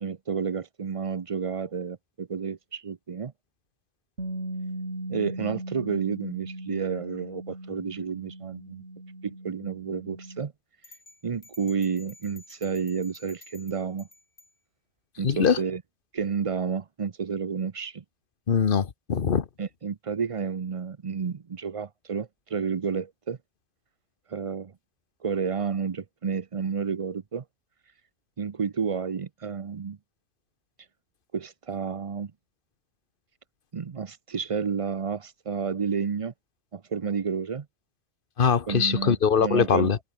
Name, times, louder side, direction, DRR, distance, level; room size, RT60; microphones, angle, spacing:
voice 1, 0.0-3.3 5.1-8.8 9.2-10.5 11.2-14.1 15.2-15.8 16.1-18.0 19.6-23.4 24.3-24.7 25.2-27.4 28.4-30.0 31.3-32.3 33.7-36.3 36.7-37.7 38.7-39.9, right 6 dB, 35° right, 0.5 m, -30 dB
Bass guitar, 4.2-10.4, right 1 dB, 65° right, 8.5 m, -38 dB
sound 1, 10.8-14.5, left 2 dB, 75° left, 5.0 m, -52 dB
voice 2, 15.2-15.6 18.5-19.5 38.4-40.0, left 6 dB, 45° left, 1.2 m, -22 dB
omnidirectional pair, 1.3 m